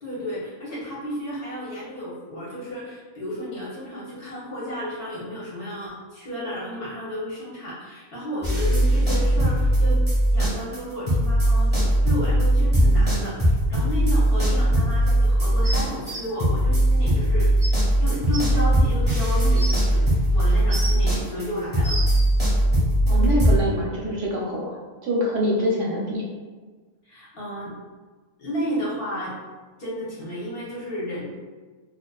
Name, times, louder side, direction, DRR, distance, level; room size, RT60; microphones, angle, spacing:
voice 1, 0.0-10.0 10.3-20.1 20.3-22.0 27.0-27.7 28.4-29.3 29.8-31.3, equal, 50° left, -8 dB, 0.8 m, -32 dB
sound 1, 8.4-10.8 11.1-23.6, right 1 dB, 10° right, 0.7 m, -20 dB
sound 2, 15.6-16.2 17.2-17.3 17.6-17.7 18.3-18.4 19.2-19.8 20.5-21.1 21.6-22.2 23.2-23.3, right 2 dB, 55° right, 0.6 m, -32 dB
voice 2, 23.1-24.8 25.0-26.2, equal, 75° right, -3 dB, 0.9 m, -25 dB
2.4 x 2.3 x 2.2 m, 1.4 s
omnidirectional pair, 1.4 m